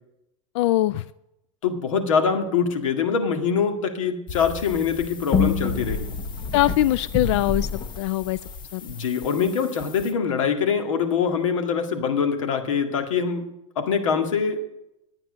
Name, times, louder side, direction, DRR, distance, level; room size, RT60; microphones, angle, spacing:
voice 1, 0.5-1.0 6.5-7.7 8.0-8.4 8.7-8.8, left 15 dB, 65° left, 18 dB, 0.4 m, -21 dB
voice 2, 1.6-6.1 8.8-13.5 13.8-14.7, left 6 dB, 85° left, 6 dB, 1.9 m, -24 dB
sound 1, 4.3-10.1, left 5 dB, 30° left, 1.1 m, -29 dB
12.0 x 9.0 x 6.3 m, 0.87 s
supercardioid pair, 130°, 16 cm